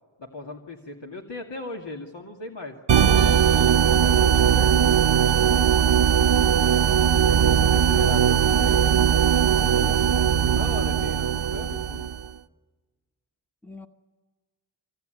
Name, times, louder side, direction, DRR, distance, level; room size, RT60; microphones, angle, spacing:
voice 1, 0.2-4.8 7.2-9.0 9.5-10.0 10.3-12.1, left 3 dB, 65° left, 0 dB, 2.3 m, -38 dB
sound 1, 2.9-12.3, right 8 dB, 65° right, 0.9 m, -19 dB
voice 2, 7.2-7.8 13.6-13.9, left 3 dB, 5° left, 6 dB, 1.1 m, -42 dB
26.0 x 25.5 x 9.1 m, 1.3 s
wide cardioid pair, 80°, 46 cm